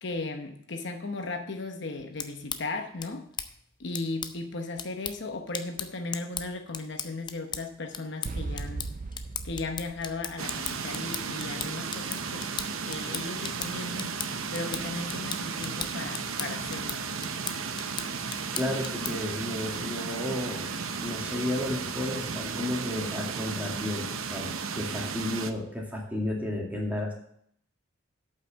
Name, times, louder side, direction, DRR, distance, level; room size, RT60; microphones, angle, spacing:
voice 1, 0.0-3.3 3.8-8.9 9.4-12.5 12.8-14.1 14.5-17.1, left 3 dB, 55° left, 5 dB, 0.9 m, -36 dB
sound 1, 2.0-19.4, left 7 dB, 20° left, 0.5 m, -39 dB
sound 2, 8.2-11.2, right 3 dB, 40° right, 0.4 m, -38 dB
sound 3, 10.4-25.5, right 5 dB, 85° right, 0.8 m, -34 dB
voice 2, 18.5-20.7 21.0-27.1, left 1 dB, 10° right, -2 dB, 2.2 m, -32 dB
8.2 x 5.8 x 7.2 m, 0.67 s
head